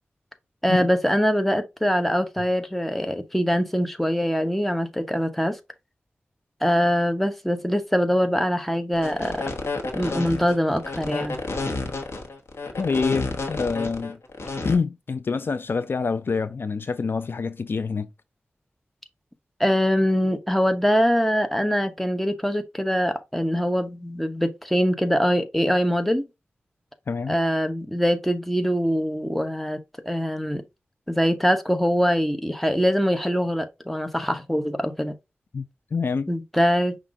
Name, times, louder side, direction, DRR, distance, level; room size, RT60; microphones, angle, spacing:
voice 1, 0.6-5.6 6.6-9.5 9.9-11.4 19.6-26.3 27.3-29.8 30.1-30.6 31.1-35.1 36.3-37.0, equal, 5° left, 0.9 m, -23 dB
sound 1, 9.0-14.7, left 3 dB, 85° left, 1.1 m, -30 dB
voice 2, 12.8-14.2 14.6-18.1 27.1-27.4 35.5-36.3, left 4 dB, 60° left, 0.4 m, -26 dB
5.7 x 2.5 x 3.7 m
wide cardioid pair, 65°, 4 cm